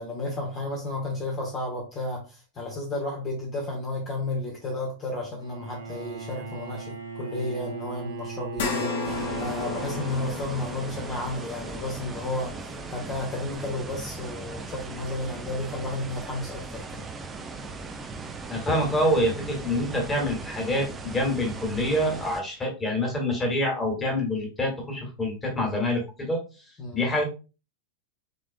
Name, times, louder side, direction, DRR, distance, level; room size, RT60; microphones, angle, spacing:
voice 1, 0.0-17.1 26.8-27.0, left 2 dB, 30° left, -2 dB, 1.4 m, -33 dB
Bowed string instrument, 5.4-10.7, right 4 dB, 70° right, 0.9 m, -37 dB
sound 1, 8.6-17.2 17.6-17.7 19.2-19.3, left 5 dB, 55° left, 1.1 m, -37 dB
sound 2, 9.0-22.4, right 3 dB, 20° right, 0.6 m, -38 dB
voice 2, 18.5-26.4 26.9-27.2, left 1 dB, 15° left, 1 dB, 2.0 m, -26 dB
6.3 x 3.4 x 2.2 m, 0.32 s
figure-of-eight pair, 90°, 0 cm